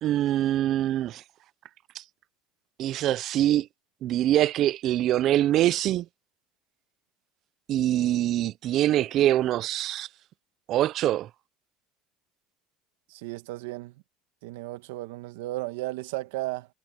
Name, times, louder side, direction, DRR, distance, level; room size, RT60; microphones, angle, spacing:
voice 1, 0.0-1.2 2.8-3.7 4.0-6.0 7.7-10.1 10.7-11.3, right 13 dB, 55° right, 0.8 m, -24 dB
voice 2, 13.1-13.9 14.4-16.7, right 18 dB, 80° right, 1.6 m, -34 dB
hypercardioid pair, 90°, 0 cm